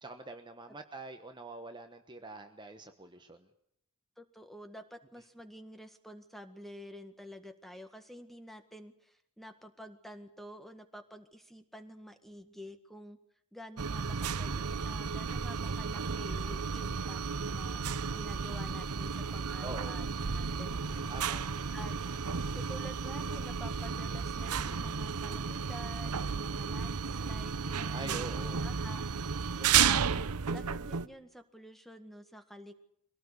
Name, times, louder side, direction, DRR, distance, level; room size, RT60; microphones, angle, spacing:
voice 1, 0.0-3.5 19.6-20.0 21.1-21.4 26.5-26.8 27.9-28.7, right 2 dB, 20° right, 6 dB, 1.2 m, -45 dB
voice 2, 4.2-13.2 13.5-21.1 21.7-21.9 22.5-28.2 28.6-29.0 29.6-32.7, equal, ahead, 8 dB, 1.7 m, -49 dB
sound 1, 13.8-31.1, right 6 dB, 90° right, 0.8 m, -33 dB
24.0 x 18.0 x 8.2 m, 0.75 s
head